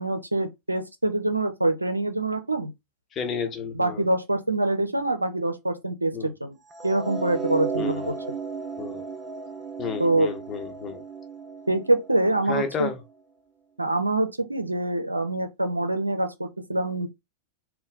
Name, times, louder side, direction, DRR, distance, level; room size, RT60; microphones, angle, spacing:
voice 1, 0.0-2.7 3.7-6.6 6.8-8.1 10.0-10.3 11.7-12.9 13.8-17.1, right 2 dB, 85° right, 0.6 m, -25 dB
voice 2, 3.1-4.1 6.1-6.3 7.8-8.1 8.8-9.1 9.8-11.0 12.5-13.0, left 6 dB, 25° left, 1.0 m, -31 dB
sound 1, 6.7-12.9, right 5 dB, 20° right, 0.7 m, -35 dB
3.9 x 2.2 x 3.9 m
figure-of-eight pair, 90°, 0 cm